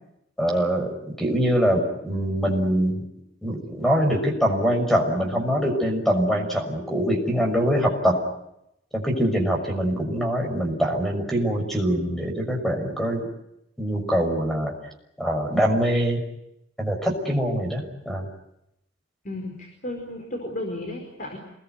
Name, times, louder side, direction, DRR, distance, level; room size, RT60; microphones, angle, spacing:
voice 1, 0.4-3.0 3.4-8.2 8.9-13.3 13.8-14.7 15.2-16.2 16.8-18.3, equal, ahead, 3 dB, 6.3 m, -23 dB
voice 2, 19.2-21.4, left 1 dB, 45° left, 3 dB, 4.9 m, -33 dB
27.5 x 21.0 x 9.5 m, 0.83 s
head